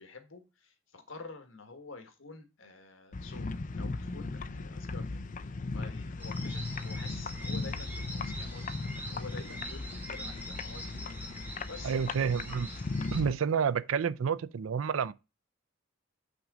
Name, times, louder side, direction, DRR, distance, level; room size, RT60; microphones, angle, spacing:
voice 1, 0.0-5.2 5.7-11.0 11.7-11.9, left 3 dB, 80° left, 1.5 m, -49 dB
sound 1, 3.1-13.4, left 3 dB, 40° left, 0.5 m, -37 dB
sound 2, 6.2-13.2, equal, 10° right, 1.8 m, -44 dB
voice 2, 11.8-12.7 13.1-15.1, right 6 dB, 90° right, 0.4 m, -29 dB
6.1 x 3.8 x 6.1 m
head